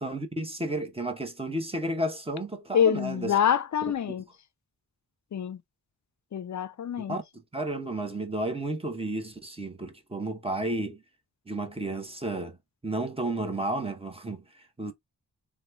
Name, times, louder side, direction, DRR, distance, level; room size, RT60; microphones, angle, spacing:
voice 1, 0.0-3.4 7.0-7.2 7.5-11.0 11.5-12.6 12.8-14.9, right 1 dB, 15° right, 0.8 m, -32 dB
voice 2, 2.7-4.2 5.3-5.6 6.3-7.2, left 8 dB, 50° left, 0.4 m, -26 dB
3.0 x 2.2 x 3.3 m
wide cardioid pair, 65°, 40 cm